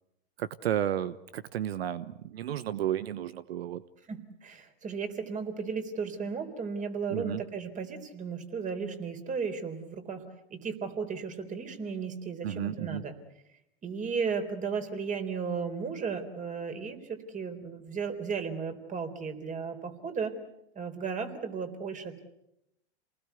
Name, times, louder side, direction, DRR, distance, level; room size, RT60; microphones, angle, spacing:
voice 1, 0.4-3.8 7.1-7.4 12.4-13.0, right 11 dB, 80° right, 15 dB, 1.0 m, -32 dB
voice 2, 4.1-10.2 10.5-13.1 13.8-20.3 20.7-22.2, right 5 dB, 25° right, 7 dB, 3.8 m, -35 dB
28.0 x 19.5 x 8.2 m, 0.85 s
hypercardioid pair, 115°, 30 cm